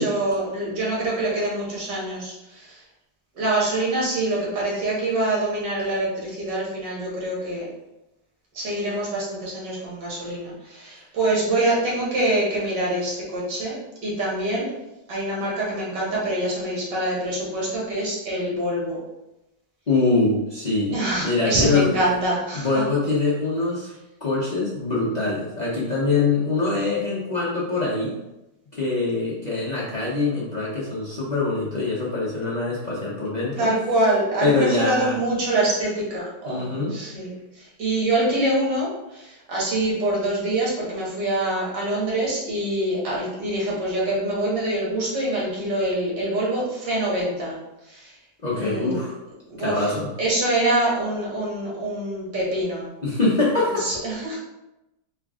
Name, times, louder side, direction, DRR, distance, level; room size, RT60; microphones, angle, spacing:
voice 1, 0.0-2.8 3.4-7.7 8.5-14.7 15.1-19.0 20.9-22.8 33.6-37.3 37.6-47.6 47.9-48.1 48.5-49.0 49.5-52.9 53.8-54.4, right 1 dB, 75° right, -5 dB, 2.0 m, -25 dB
voice 2, 19.9-21.9 22.5-23.9 24.2-28.2 28.7-33.7 34.4-35.2 36.4-37.0 48.4-49.1 49.6-50.1 53.0-53.9, left 3 dB, 45° left, -7 dB, 0.5 m, -23 dB
4.4 x 2.5 x 3.5 m, 0.94 s
omnidirectional pair, 1.9 m